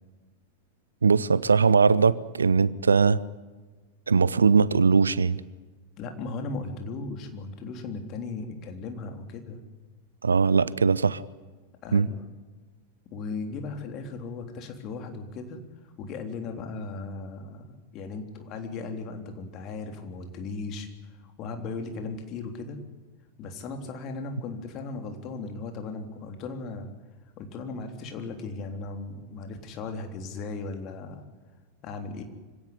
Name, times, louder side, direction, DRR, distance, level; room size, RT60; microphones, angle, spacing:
voice 1, 1.0-3.2 4.1-5.4 10.2-11.2 11.9-12.1, right 5 dB, 75° right, 20 dB, 0.7 m, -20 dB
voice 2, 6.0-9.6 11.8-12.2 13.1-15.6 16.0-22.8 23.4-26.9 27.4-31.2 31.8-32.2, left 3 dB, 35° left, 5 dB, 3.6 m, -37 dB
25.0 x 17.0 x 9.6 m, 1.3 s
figure-of-eight pair, 90°, 0 cm